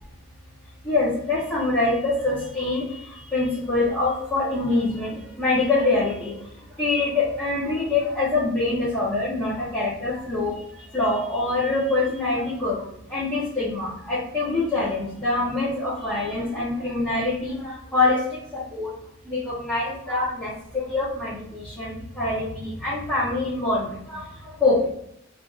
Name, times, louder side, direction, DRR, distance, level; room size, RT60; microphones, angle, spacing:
voice 1, 0.8-2.8 3.3-6.3 6.8-10.5 10.9-12.8 13.1-18.2 18.5-18.9 19.3-24.2 24.6-24.8, left 2 dB, 10° left, -11 dB, 1.0 m, -24 dB
2.7 x 2.7 x 3.6 m, 0.73 s
head